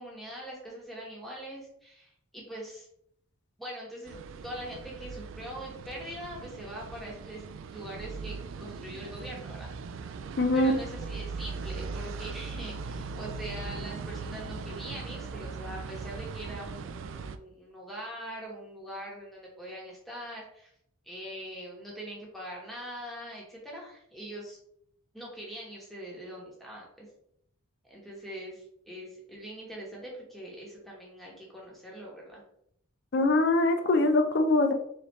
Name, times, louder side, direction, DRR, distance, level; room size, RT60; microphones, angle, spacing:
voice 1, 0.0-2.9 3.6-9.7 10.5-20.7 21.1-24.6 25.1-27.1 27.8-32.4, equal, ahead, -4 dB, 1.2 m, -42 dB
sound 1, 4.1-17.4, right 4 dB, 60° right, 0.3 m, -39 dB
voice 2, 10.4-10.8 33.1-34.7, left 2 dB, 55° left, 6 dB, 0.5 m, -23 dB
4.0 x 3.3 x 3.1 m, 0.70 s
head